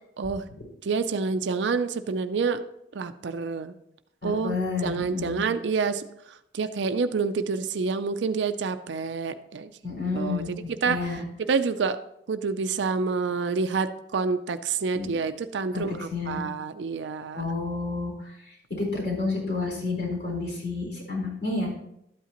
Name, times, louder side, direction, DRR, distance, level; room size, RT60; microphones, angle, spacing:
voice 1, 0.8-2.6 2.9-3.7 4.2-4.5 4.8-6.0 6.5-10.4 10.8-11.0 11.4-12.0 12.3-17.5, right 4 dB, 80° right, 9 dB, 0.5 m, -28 dB
voice 2, 4.2-5.4 9.8-10.5 10.8-11.2 14.9-15.1 15.7-16.4 17.3-18.4 18.7-21.7, left 3 dB, 60° left, -2 dB, 4.1 m, -30 dB
12.5 x 8.3 x 2.9 m, 0.78 s
head